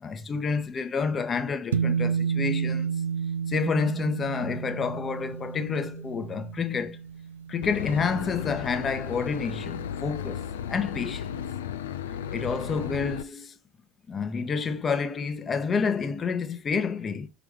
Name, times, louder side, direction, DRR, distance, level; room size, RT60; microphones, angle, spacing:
voice 1, 0.0-2.9 3.5-7.0 7.5-11.3 12.3-13.5 14.1-17.3, left 5 dB, 30° left, 1.0 m, -29 dB
sound 1, 1.7-8.3, right 7 dB, 75° right, 0.3 m, -31 dB
Boat Water vehicle / Engine, 7.6-13.2, left 8 dB, 70° left, 0.4 m, -34 dB
5.9 x 5.0 x 3.2 m
figure-of-eight pair, 60°, 0 cm